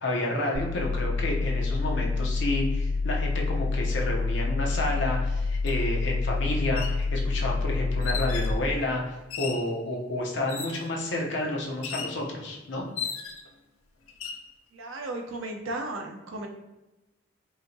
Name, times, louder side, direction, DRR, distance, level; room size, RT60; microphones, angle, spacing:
voice 1, 0.0-12.8, left 1 dB, 60° left, -1 dB, 0.8 m, -30 dB
sound 1, 0.5-8.5, left 3 dB, 40° right, 0.3 m, -27 dB
sound 2, 5.7-5.8 6.6-7.0 8.0-8.6 9.3-9.7 10.5-10.9 11.8-12.2 13.0-13.5 14.1-14.4, left 6 dB, 90° left, 0.5 m, -36 dB
voice 2, 14.7-16.5, right 2 dB, 75° right, 2 dB, 0.6 m, -35 dB
4.8 x 2.8 x 2.7 m, 1.0 s
head